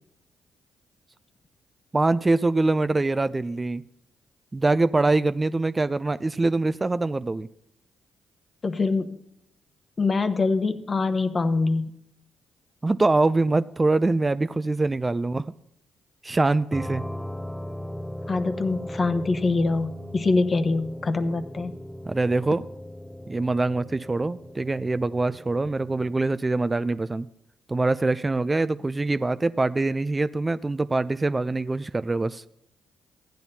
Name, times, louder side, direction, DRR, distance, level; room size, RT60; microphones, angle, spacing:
voice 1, 1.9-3.8 4.5-7.5 12.8-15.4 16.2-17.0 22.1-22.6 23.3-27.3 27.7-32.4, right 2 dB, 25° right, 0.3 m, -24 dB
voice 2, 8.6-9.2 10.0-11.9 18.3-21.7, left 3 dB, 40° left, 0.9 m, -24 dB
sound 1, 16.7-26.2, equal, 5° left, 0.7 m, -38 dB
15.0 x 9.0 x 2.8 m
hypercardioid pair, 45°, 0 cm